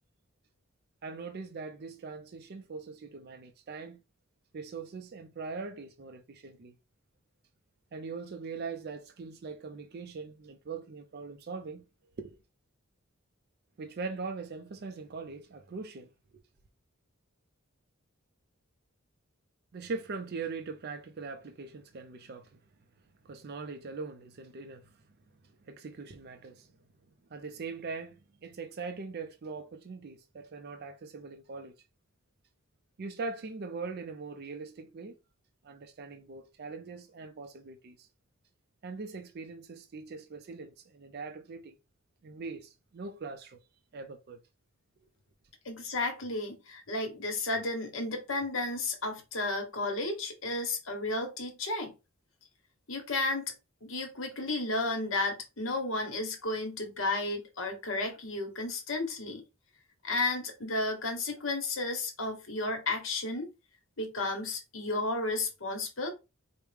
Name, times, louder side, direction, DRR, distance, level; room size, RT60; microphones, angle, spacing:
voice 1, 1.0-4.0 4.5-6.7 7.9-11.8 12.2-12.3 13.8-16.4 19.7-22.6 23.2-24.9 25.6-26.7 27.3-31.8 33.0-35.2 35.6-38.1 38.8-41.8 42.2-43.6 43.9-44.4, right 4 dB, 50° right, 0.4 m, -41 dB
voice 2, 45.6-51.9 52.9-53.5 53.8-59.4 60.0-63.5 64.0-66.1, left 2 dB, 65° left, 1.2 m, -33 dB
4.7 x 2.1 x 3.3 m
head